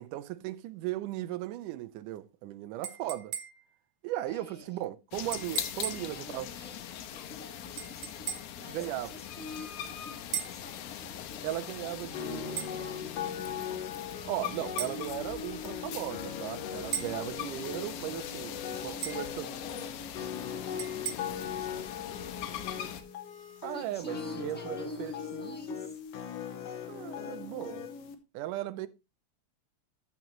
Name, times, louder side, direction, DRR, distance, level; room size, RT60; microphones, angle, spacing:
voice 1, 0.0-3.3 4.0-6.5 8.7-9.1 11.4-12.7 14.2-19.5 23.6-25.6 26.9-27.9 28.3-28.9, right 14 dB, 90° right, 2.2 m, -37 dB
sound 1, 2.8-3.8 5.3-6.2 7.8-8.6 10.3-10.7 12.6-12.8 14.8-15.0 16.9-17.2 19.0-19.3 20.8-21.1, right 10 dB, 70° right, 1.5 m, -37 dB
voice 2, 4.3-4.9 5.8-11.5 11.8-13.4 18.7-22.8 23.7-26.0, left 2 dB, 10° left, 0.7 m, -48 dB
sound 2, 5.1-23.0, left 10 dB, 80° left, 2.3 m, -41 dB
sound 3, 12.1-28.2, left 8 dB, 65° left, 1.8 m, -40 dB
14.5 x 6.0 x 3.0 m
omnidirectional pair, 3.6 m